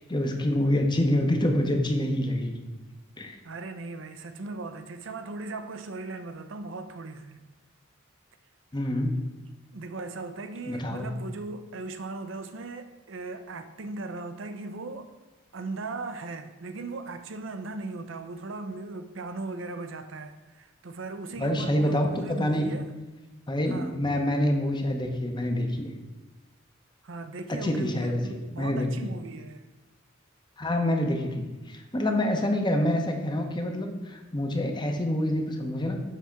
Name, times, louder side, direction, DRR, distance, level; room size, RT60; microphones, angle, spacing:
voice 1, 0.0-2.6 3.2-3.4 8.7-9.3 10.7-11.1 21.4-22.7 23.5-25.9 27.5-29.1 30.6-36.0, left 1 dB, 25° left, 0.8 m, -27 dB
voice 2, 3.4-7.4 9.7-15.1 15.5-22.9 23.7-24.0 27.0-29.7, right 3 dB, 70° right, 0.6 m, -38 dB
7.4 x 3.5 x 5.7 m
head